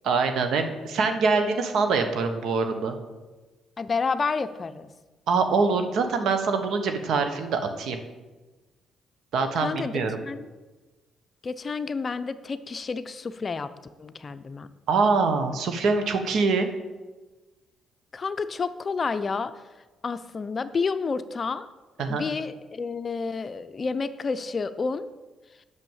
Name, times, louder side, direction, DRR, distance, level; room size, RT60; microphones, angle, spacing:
voice 1, 0.0-3.0 5.3-8.0 9.3-10.2 14.9-16.7 22.0-22.2, right 4 dB, 75° right, 7 dB, 1.2 m, -24 dB
voice 2, 3.8-4.9 9.6-10.5 11.4-13.7 14.0-14.7 18.1-19.5 20.0-21.7 22.1-25.1, left 4 dB, 35° left, 12 dB, 0.5 m, -30 dB
8.0 x 6.3 x 7.3 m, 1.2 s
cardioid pair, 90°, 0 cm